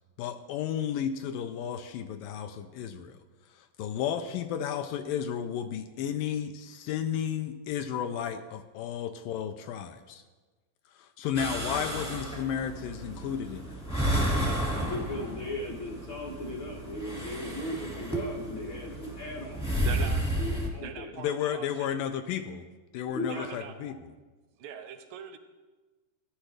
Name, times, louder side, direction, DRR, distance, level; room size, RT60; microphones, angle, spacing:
voice 1, 0.2-3.2 3.5-10.2 11.0-13.8 21.1-22.7 22.9-24.1, left 9 dB, 80° left, 7 dB, 2.2 m, -33 dB
sound 1, 11.3-20.7, right 1 dB, 5° left, 0.6 m, -32 dB
voice 2, 14.8-19.7 20.4-21.1 23.1-23.5 23.8-23.9, left 2 dB, 65° left, -4 dB, 1.2 m, -37 dB
voice 3, 19.8-20.4 20.8-21.9 23.3-23.7 24.6-25.4, right 8 dB, 85° right, 8 dB, 2.4 m, -41 dB
16.0 x 10.0 x 3.3 m, 1.3 s
omnidirectional pair, 4.0 m